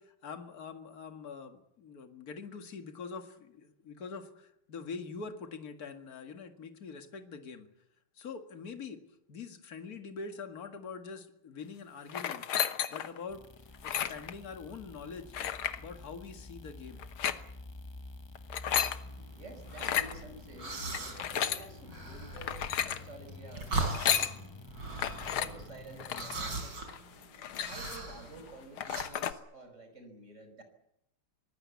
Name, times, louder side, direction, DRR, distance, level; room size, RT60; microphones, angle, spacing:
voice 1, 0.0-7.7 8.2-9.0 9.3-12.5 12.9-13.5 13.8-15.4 15.8-17.1, left 5 dB, 45° left, 6 dB, 2.3 m, -44 dB
sound 1, 12.1-13.2 13.7-14.3 15.3-15.8 17.0-17.4 18.4-19.0 19.7-20.1 20.9-21.6 22.4-23.0 23.8-24.3 25.0-25.5 26.0-26.3 26.9-27.0 27.2-28.1 28.5-28.6 28.8-29.3, left 9 dB, 80° left, 2.0 m, -32 dB
sound 2, 13.3-26.6, left 3 dB, 25° left, 0.6 m, -49 dB
sound 3, 19.1-29.0, right 2 dB, 55° right, 5.4 m, -40 dB
voice 2, 19.4-24.5 25.4-26.8 27.7-30.6, right 2 dB, 35° right, 7 dB, 5.3 m, -51 dB
25.0 x 19.5 x 8.4 m, 0.80 s
omnidirectional pair, 2.3 m